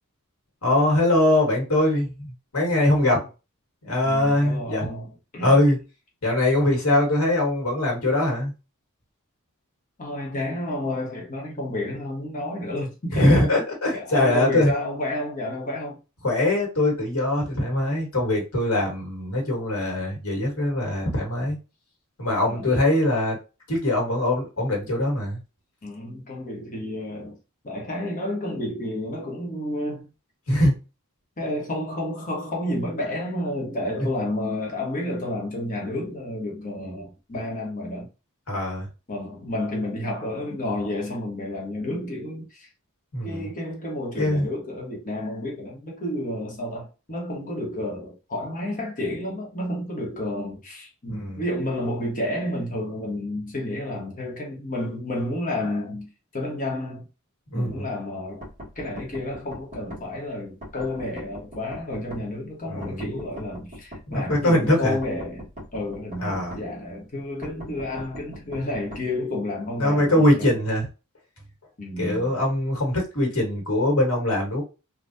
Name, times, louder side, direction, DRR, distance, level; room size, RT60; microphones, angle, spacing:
voice 1, 0.6-3.2 3.8-4.9 5.4-5.8 6.2-8.5 13.1-14.7 16.2-21.6 22.2-23.4 23.7-25.4 30.5-30.7 33.9-34.1 38.5-38.9 43.1-43.5 44.2-44.5 51.1-51.4 57.5-57.8 62.7-63.1 64.1-65.0 66.2-66.5 69.8-70.9 72.0-74.6, left 1 dB, 70° left, 1.5 m, -22 dB
voice 2, 4.0-5.1 5.3-5.5 10.0-13.4 13.9-16.0 22.4-22.7 25.8-27.4 27.6-30.0 31.4-38.1 39.1-42.7 43.2-56.1 56.3-57.1 57.5-58.5 58.7-70.5 71.8-72.3, left 1 dB, 40° left, 1.2 m, -30 dB
sound 1, 58.4-60.0 60.6-62.2 62.8-64.4 65.0-66.6 67.4-69.0, equal, 35° right, 1.6 m, -40 dB
3.5 x 2.4 x 2.6 m
head